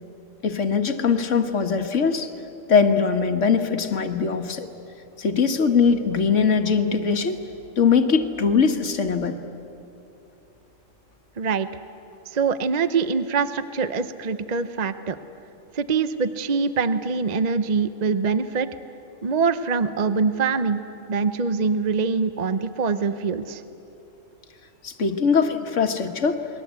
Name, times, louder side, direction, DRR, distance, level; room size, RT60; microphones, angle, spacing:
voice 1, 0.4-2.3 2.7-4.7 5.2-7.4 7.8-9.4 24.8-26.4, left 5 dB, 70° left, 6 dB, 1.7 m, -21 dB
voice 2, 11.4-11.7 12.3-15.2 15.7-18.7 19.2-20.8 21.1-23.6, right 5 dB, 40° right, 11 dB, 0.7 m, -24 dB
29.0 x 21.0 x 8.2 m, 2.9 s
omnidirectional pair, 1.3 m